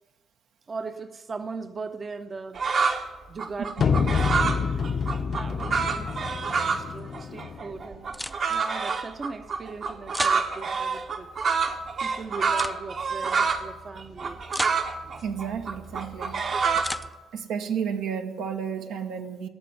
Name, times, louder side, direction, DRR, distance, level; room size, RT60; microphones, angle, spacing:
voice 1, 0.7-2.6 3.3-4.5 5.0-6.2 6.8-11.3 12.0-14.4, right 4 dB, 40° right, 9 dB, 0.7 m, -39 dB
Hót Đi Gà Hót Đi Gà, 2.5-3.0 3.4-6.9 7.1-13.7 14.0-17.1, right 5 dB, 55° right, 1.1 m, -27 dB
sound 1, 3.8-7.8, left 6 dB, 55° left, 0.7 m, -27 dB
sound 2, 8.1-8.7 10.1-10.4 12.5-12.8 14.5-14.8 16.8-17.1, equal, ahead, 0.4 m, -33 dB
voice 2, 15.2-16.4 16.7-16.8 17.3-19.5, right 7 dB, 85° right, 5 dB, 1.1 m, -32 dB
18.0 x 6.9 x 7.9 m, 1.2 s
cardioid pair, 90°, 0 cm